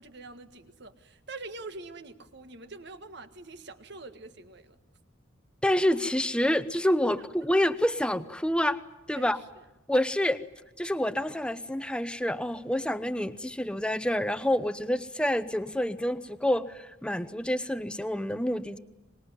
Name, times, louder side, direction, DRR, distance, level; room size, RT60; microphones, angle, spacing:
voice 1, 0.0-4.8 7.2-7.3 9.1-9.5 10.2-10.3, right 3 dB, 60° right, 9 dB, 1.7 m, -45 dB
voice 2, 5.6-8.8 9.1-9.4 9.9-10.4 10.8-18.8, left 1 dB, 5° left, 12 dB, 0.9 m, -27 dB
24.5 x 21.0 x 9.7 m, 0.95 s
head